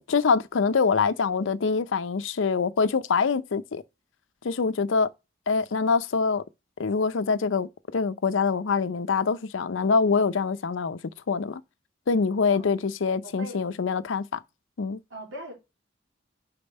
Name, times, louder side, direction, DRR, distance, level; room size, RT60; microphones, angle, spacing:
voice 1, 0.1-3.8 4.4-5.1 5.5-6.4 6.8-11.0 11.3-11.6 12.1-14.4 14.8-15.0, left 5 dB, 75° left, 0.5 m, -24 dB
voice 2, 13.2-13.8 15.1-15.5, right 1 dB, 80° right, 3.0 m, -40 dB
5.4 x 4.2 x 4.3 m
head